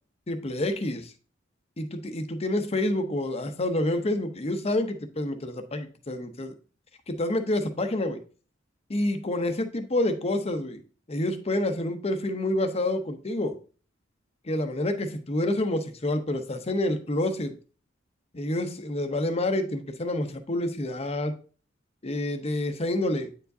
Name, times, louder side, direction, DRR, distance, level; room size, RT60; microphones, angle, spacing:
voice 1, 0.3-1.1 1.8-6.5 7.1-8.2 8.9-10.8 11.1-13.5 14.5-17.5 18.3-21.3 22.0-23.3, left 1 dB, 35° left, 8 dB, 0.7 m, -28 dB
8.6 x 4.7 x 2.7 m, 0.38 s
head